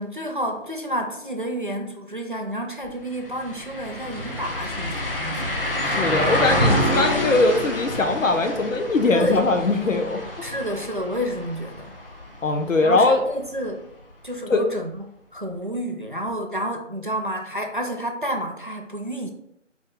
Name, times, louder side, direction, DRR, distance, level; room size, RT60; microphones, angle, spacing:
voice 1, 0.0-5.6 9.1-9.5 10.4-12.0 12.8-13.9 14.2-14.9 15.3-19.3, equal, 45° right, 3 dB, 0.4 m, -30 dB
sound 1, 2.8-2.9 3.3-13.0 13.4-13.5 16.3-16.4, left 1 dB, 45° left, 0.8 m, -27 dB
voice 2, 5.8-10.2 12.4-13.2 14.5-14.6, left 3 dB, 85° left, 5 dB, 0.8 m, -21 dB
4.3 x 2.4 x 3.7 m, 0.77 s
figure-of-eight pair, 170°, 38 cm